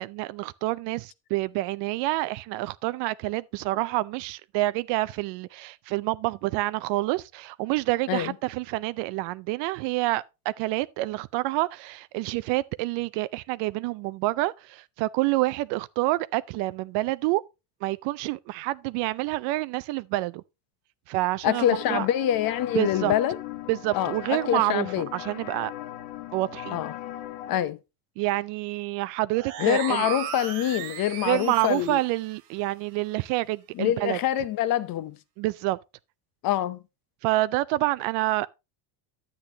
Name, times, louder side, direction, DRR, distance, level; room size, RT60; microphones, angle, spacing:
voice 1, 0.0-17.4 17.8-20.4 21.1-22.1 22.7-23.1 23.7-25.7 26.3-26.8 28.2-30.1 31.2-34.2 35.4-35.8 37.2-38.5, right 18 dB, 65° right, 0.5 m, -28 dB
voice 2, 21.4-23.4 23.9-25.1 26.7-26.9 27.5-27.8 29.6-32.0 33.7-35.2 36.4-36.8, left 11 dB, 50° left, 0.9 m, -25 dB
sound 1, 21.6-27.6, left 13 dB, 70° left, 1.3 m, -38 dB
sound 2, 29.3-32.0, right 10 dB, 90° right, 2.0 m, -35 dB
10.5 x 8.5 x 2.9 m
cardioid pair, 130°, 45 cm